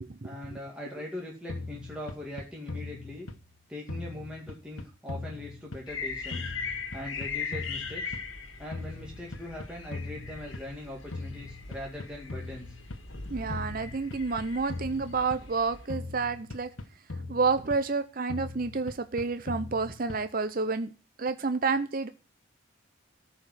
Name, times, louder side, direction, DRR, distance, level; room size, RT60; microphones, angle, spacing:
voice 1, 0.2-3.3 3.7-6.5 6.9-8.1 8.6-12.7, left 1 dB, 5° right, -3 dB, 2.2 m, -41 dB
sound 1, 1.5-3.6 3.9-6.0 6.3-8.4 8.7-10.8 11.1-13.1 13.5-15.6 15.9-18.0 18.3-20.4, left 2 dB, 85° left, 1.2 m, -40 dB
sound 2, 5.9-15.8, left 5 dB, 70° left, 1.8 m, -40 dB
voice 2, 13.3-16.7 17.3-20.9 21.2-22.1, right 4 dB, 45° right, 10 dB, 0.7 m, -29 dB
14.5 x 5.1 x 7.6 m, 0.34 s
head